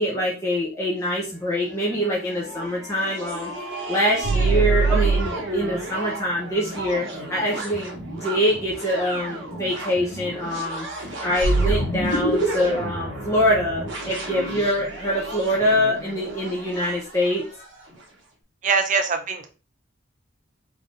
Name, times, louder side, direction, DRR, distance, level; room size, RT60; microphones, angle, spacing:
voice 1, 0.0-3.5 3.9-17.4, equal, 15° left, -5 dB, 0.6 m, -24 dB
sound 1, 1.0-18.1, right 1 dB, 65° right, 1.0 m, -35 dB
sound 2, 4.2-5.8 11.4-14.5, right 3 dB, 80° left, 0.6 m, -23 dB
voice 2, 18.6-19.5, right 4 dB, 35° right, 7 dB, 0.4 m, -22 dB
3.7 x 3.2 x 2.5 m, 0.33 s
head